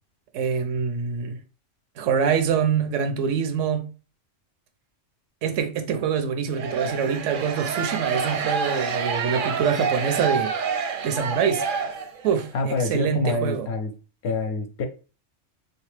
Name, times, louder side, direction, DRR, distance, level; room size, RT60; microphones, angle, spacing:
voice 1, 0.3-1.4 2.0-3.9 5.4-10.5 11.0-11.6 12.2-13.7, right 7 dB, 90° right, 1.0 m, -25 dB
sound 1, 6.5-12.4, right 5 dB, 60° right, 0.5 m, -28 dB
voice 2, 12.5-13.9 14.2-14.9, left 3 dB, 65° left, 0.8 m, -26 dB
3.4 x 2.9 x 3.2 m
omnidirectional pair, 1.3 m